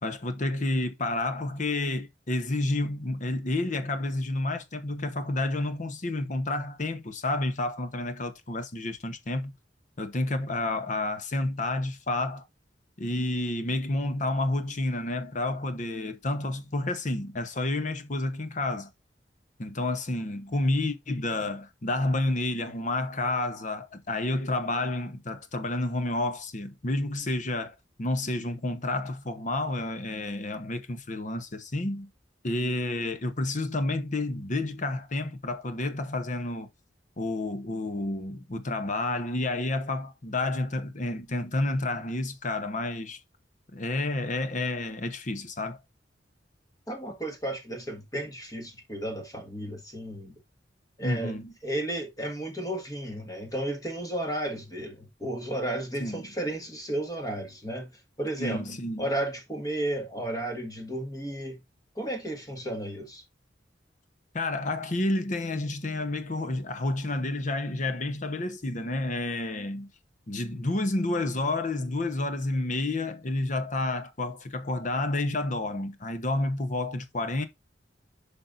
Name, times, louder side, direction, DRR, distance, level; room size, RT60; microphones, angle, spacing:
voice 1, 0.0-9.5 10.0-12.4 13.0-18.9 19.6-32.1 32.4-36.7 37.2-43.2 43.7-45.8 51.0-51.5 56.0-56.2 58.4-59.0 64.3-69.9 70.3-77.4, left 2 dB, 45° left, 0.9 m, -30 dB
voice 2, 46.9-50.4 51.0-51.4 51.6-57.9 58.2-58.6 59.0-61.6 61.9-63.2, right 1 dB, 20° left, 1.6 m, -33 dB
8.3 x 5.4 x 2.5 m
head